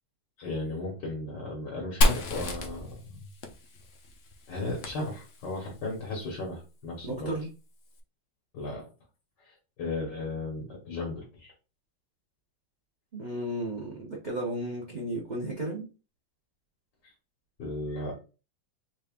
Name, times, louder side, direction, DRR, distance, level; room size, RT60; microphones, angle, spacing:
voice 1, 0.4-3.2 4.5-7.3 8.5-8.9 9.4-11.5 17.0-17.1 17.6-18.2, left 2 dB, 65° left, -2 dB, 1.7 m, -35 dB
Fire, 2.0-5.7, left 1 dB, 90° left, 0.5 m, -30 dB
voice 2, 7.0-7.5 13.1-15.9, right 1 dB, 65° right, -2 dB, 0.4 m, -34 dB
3.9 x 3.4 x 2.4 m, 0.32 s
omnidirectional pair, 2.0 m